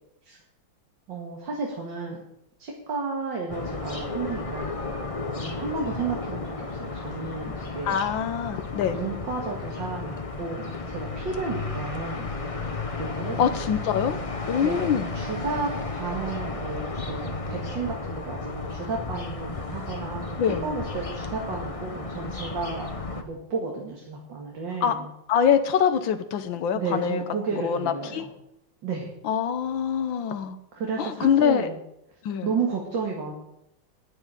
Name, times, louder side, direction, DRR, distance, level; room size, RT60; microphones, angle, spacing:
voice 1, 1.1-2.2 2.6-4.9 5.4-8.0 8.9-12.4 13.0-13.4 14.6-14.9 15.1-20.3 20.6-25.1 26.7-28.3 28.8-29.1 30.7-31.8 32.4-33.3, right 4 dB, 75° right, -1 dB, 2.8 m, -32 dB
sound 1, 3.5-23.2, left 3 dB, 25° left, 0.9 m, -33 dB
voice 2, 7.8-9.0 13.4-14.2 14.5-15.1 20.4-20.6 24.8-25.0 25.3-27.2 27.6-28.3 29.2-30.6 31.0-31.6 32.2-32.5, left 8 dB, 85° left, 9 dB, 1.7 m, -24 dB
10.5 x 9.9 x 9.0 m, 0.82 s
omnidirectional pair, 2.0 m